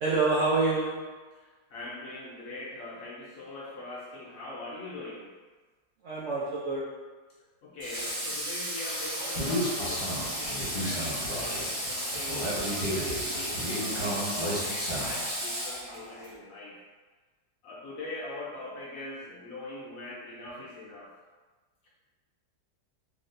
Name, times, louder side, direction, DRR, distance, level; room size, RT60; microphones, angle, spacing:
voice 1, 0.0-1.0 6.0-6.9, right 3 dB, 85° right, -5 dB, 0.6 m, -27 dB
voice 2, 1.3-5.3 7.6-16.8 17.6-21.1 21.8-21.9, left 2 dB, 65° left, -5 dB, 0.8 m, -42 dB
Water / Water tap faucet, 7.8-16.3, equal, 15° right, 0.9 m, -34 dB
Human voice, 9.3-15.3, equal, 35° left, 1.1 m, -33 dB
4.0 x 3.2 x 2.5 m, 1.3 s
omnidirectional pair, 2.0 m